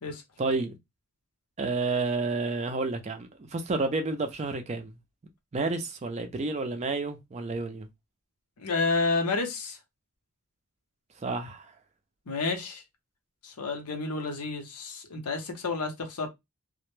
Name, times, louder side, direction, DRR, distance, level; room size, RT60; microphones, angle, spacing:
voice 1, 0.4-0.8 1.6-4.9 5.5-7.9 11.2-11.7, right 3 dB, 30° right, 0.4 m, -30 dB
voice 2, 8.6-9.8 12.3-12.8 13.4-16.3, left 3 dB, 85° left, 0.7 m, -30 dB
2.1 x 2.1 x 3.0 m
head